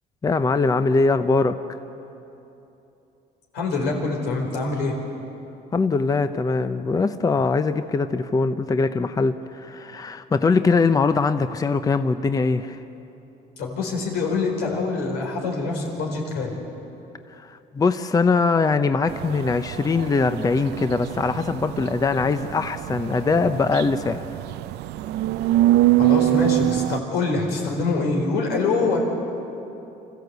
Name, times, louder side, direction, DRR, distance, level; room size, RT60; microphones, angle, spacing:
voice 1, 0.2-1.6 5.7-12.8 17.4-24.2, left 4 dB, 20° left, 10 dB, 0.7 m, -22 dB
voice 2, 3.5-4.9 13.6-16.5 26.0-29.0, left 3 dB, 90° left, 0 dB, 4.4 m, -25 dB
sound 1, 19.1-27.0, right 15 dB, 80° right, 0.5 m, -24 dB
25.5 x 14.5 x 8.1 m, 3.0 s
cardioid pair, 110°, 17 cm